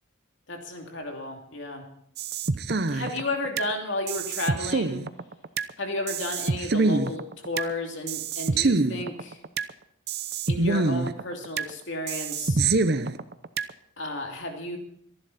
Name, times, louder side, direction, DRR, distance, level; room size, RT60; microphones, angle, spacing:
voice 1, 0.5-1.8 2.9-5.1 5.8-9.4 10.5-12.7 14.0-14.8, left 2 dB, 60° left, 2 dB, 2.8 m, -33 dB
sound 1, 2.2-3.7 4.1-5.7 6.1-7.7 8.1-9.7 10.1-11.7 12.1-13.7, right 3 dB, 50° right, 0.8 m, -26 dB
24.0 x 11.0 x 4.2 m, 0.68 s
head